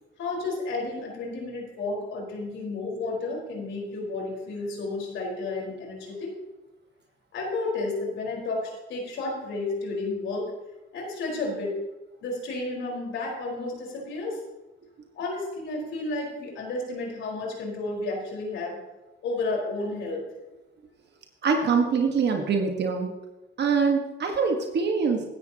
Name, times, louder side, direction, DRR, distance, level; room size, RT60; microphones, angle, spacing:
voice 1, 0.2-6.3 7.3-10.5 10.9-11.7 12.2-14.4 15.1-18.8 19.2-20.3, left 2 dB, 75° left, -2 dB, 4.7 m, -32 dB
voice 2, 21.4-23.1 23.6-25.2, right 5 dB, 60° right, 3 dB, 1.5 m, -24 dB
15.5 x 11.0 x 2.9 m, 1.1 s
cardioid pair, 90°, 20 cm